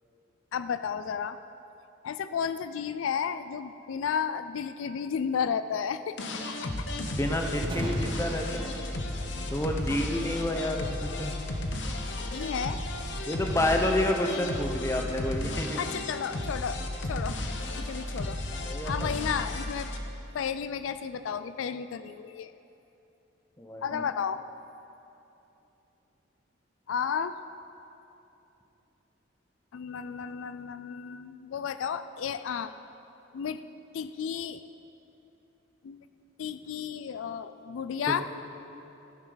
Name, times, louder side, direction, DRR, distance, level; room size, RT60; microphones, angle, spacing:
voice 1, 0.5-1.4 2.0-6.3 6.6-6.9 9.9-10.0 12.3-12.8 15.8-17.4 17.8-18.4 18.8-19.9 20.3-22.5 23.8-24.4 26.9-27.4 29.7-32.7 33.3-33.7 33.9-34.6 35.8-36.0 36.4-38.2, left 7 dB, 85° left, 12 dB, 0.3 m, -33 dB
sound 1, 6.2-20.0, left 1 dB, 65° left, 0.9 m, -34 dB
voice 2, 7.2-8.8 9.5-11.3 13.3-15.8 18.7-19.1 23.6-24.0 38.1-38.2, left 1 dB, 15° left, 3 dB, 0.8 m, -29 dB
Thunder, 7.5-21.6, right 1 dB, 25° right, 0.7 m, -45 dB
14.5 x 9.6 x 3.9 m, 3.0 s
head